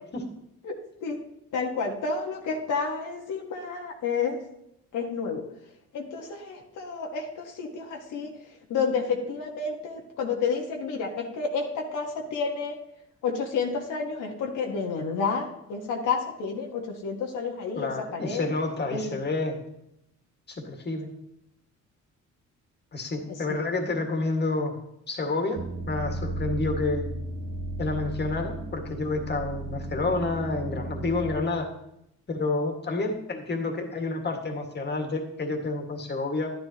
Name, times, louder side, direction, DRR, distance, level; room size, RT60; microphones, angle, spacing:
voice 1, 0.6-1.2 1.5-4.4 4.9-5.4 5.9-8.3 8.7-12.8 13.2-18.5 18.9-19.2 23.5-23.6, left 5 dB, 80° left, 0 dB, 1.5 m, -30 dB
voice 2, 17.8-19.6 20.5-21.1 22.9-24.8 25.1-27.1 27.8-31.7 32.3-36.5, left 3 dB, 35° left, 3 dB, 1.9 m, -29 dB
sound 1, 25.6-31.4, right 1 dB, 45° right, 1.0 m, -34 dB
11.0 x 10.5 x 2.9 m, 0.79 s
cardioid pair, 90°, 30 cm